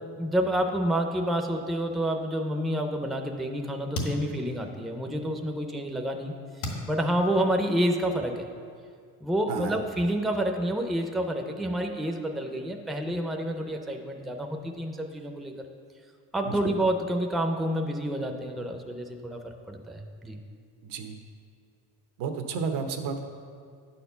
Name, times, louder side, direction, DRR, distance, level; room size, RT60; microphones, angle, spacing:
voice 1, 0.2-8.5 9.2-15.5 16.3-20.4, right 1 dB, ahead, 4 dB, 0.4 m, -29 dB
sound 1, 3.8-5.4 5.8-7.9, left 1 dB, 75° left, 1.9 m, -37 dB
voice 2, 20.8-21.1 22.2-23.2, right 5 dB, 90° right, 6 dB, 1.0 m, -32 dB
9.6 x 4.3 x 6.9 m, 2.2 s
cardioid pair, 140°, 38 cm